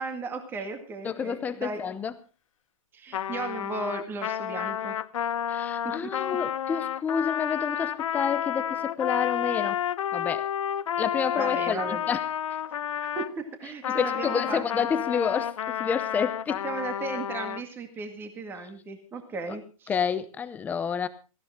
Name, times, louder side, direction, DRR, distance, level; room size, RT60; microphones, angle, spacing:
voice 1, 0.0-1.8 2.9-4.9 6.0-6.1 11.4-12.0 13.0-14.9 16.6-19.9, right 3 dB, 10° right, 2.0 m, -36 dB
voice 2, 1.0-2.1 5.5-9.8 10.1-10.5 11.0-12.2 13.9-16.6 19.9-21.1, left 7 dB, 10° left, 0.7 m, -29 dB
Trumpet, 3.1-13.3 13.8-17.6, left 10 dB, 65° left, 0.8 m, -30 dB
17.5 x 16.0 x 3.6 m
hypercardioid pair, 160°, 18 cm